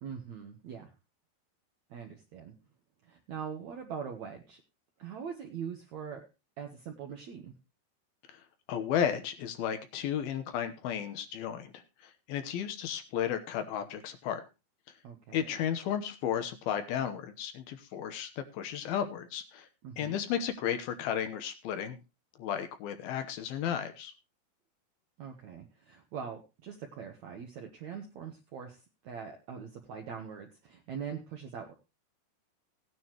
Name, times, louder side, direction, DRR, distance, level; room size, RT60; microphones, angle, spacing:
voice 1, 0.0-0.9 1.9-2.5 3.0-4.6 5.0-6.3 6.6-7.5 15.0-15.6 19.8-20.2 25.2-31.7, right 7 dB, 65° right, 3 dB, 1.9 m, -42 dB
voice 2, 8.7-11.7 12.3-14.4 15.3-19.7 20.0-22.0 22.4-24.1, left 9 dB, 75° left, 9 dB, 2.7 m, -33 dB
17.5 x 9.6 x 2.9 m, 0.27 s
omnidirectional pair, 4.7 m